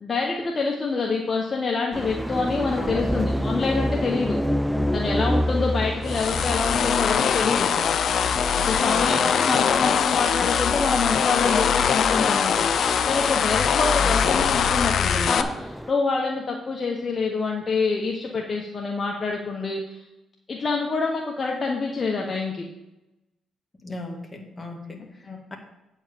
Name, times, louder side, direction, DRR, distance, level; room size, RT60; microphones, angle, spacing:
voice 1, 0.0-4.4 4.9-7.7 8.5-20.1 20.5-22.7 25.2-25.4, left 4 dB, 35° left, 0 dB, 1.1 m, -26 dB
sound 1, 1.9-15.9, equal, ahead, 0.3 m, -30 dB
voice 2, 2.8-3.1 8.8-9.8 14.0-14.2 23.8-25.5, left 2 dB, 20° left, 2 dB, 1.9 m, -38 dB
sound 2, 6.1-15.4, left 7 dB, 60° left, 0.6 m, -22 dB
8.7 x 4.7 x 7.1 m, 0.96 s
cardioid pair, 90°, 0 cm